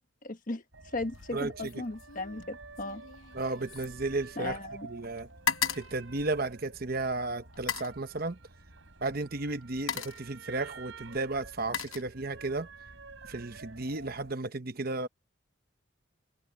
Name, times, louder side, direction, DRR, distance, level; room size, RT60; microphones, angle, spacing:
voice 1, 0.2-0.6 0.9-3.0 4.4-4.9, left 2 dB, 40° left, 1.3 m, -36 dB
sound 1, 0.7-14.3, right 3 dB, 65° right, 5.1 m, -50 dB
sound 2, 1.0-1.3 1.6-4.8 5.0-6.9 7.5-8.0 9.0-9.2 9.6-10.3 11.2-12.6 12.9-13.3, left 7 dB, 80° left, 0.9 m, -37 dB
voice 2, 1.3-1.8 3.3-4.6 4.8-5.3 5.7-8.4 9.0-12.7 13.3-15.1, right 2 dB, 45° right, 1.0 m, -34 dB
head